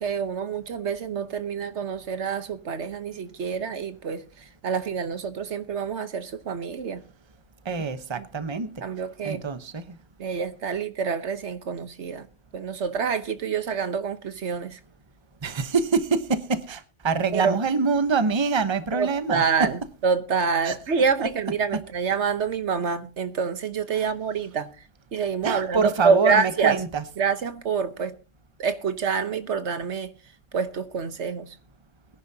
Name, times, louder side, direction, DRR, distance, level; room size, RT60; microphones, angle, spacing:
voice 1, 0.0-7.0 8.2-8.3 8.8-9.4 10.2-12.3 12.5-14.8 17.3-17.6 18.9-26.8 27.2-28.2 28.6-30.1 30.5-31.6, right 6 dB, 70° right, 1.3 m, -27 dB
voice 2, 7.6-8.7 9.2-10.0 15.4-19.7 20.6-20.7 21.2-21.3 25.4-27.0, right 4 dB, 25° right, 0.9 m, -25 dB
22.0 x 10.5 x 2.8 m
omnidirectional pair, 1.3 m